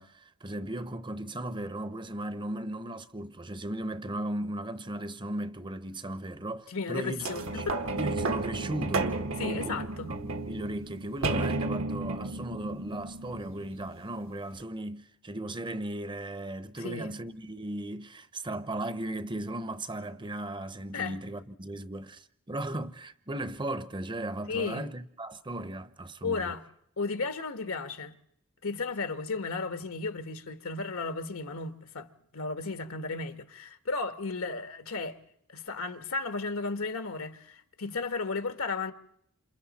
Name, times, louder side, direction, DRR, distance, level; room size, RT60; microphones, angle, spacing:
voice 1, 0.0-7.2 7.5-7.7 7.9-9.1 9.4-9.9 10.5-26.5, right 1 dB, 20° right, 0.8 m, -36 dB
voice 2, 6.7-7.8 9.4-10.1 16.8-17.1 20.9-21.2 24.5-24.9 26.2-26.6 27.0-28.2 28.6-32.1 32.3-35.2 35.5-38.9, left 4 dB, 75° left, 1.3 m, -34 dB
sound 1, 7.2-14.0 14.6-14.7, right 2 dB, 65° right, 1.3 m, -33 dB
28.0 x 27.5 x 4.2 m
head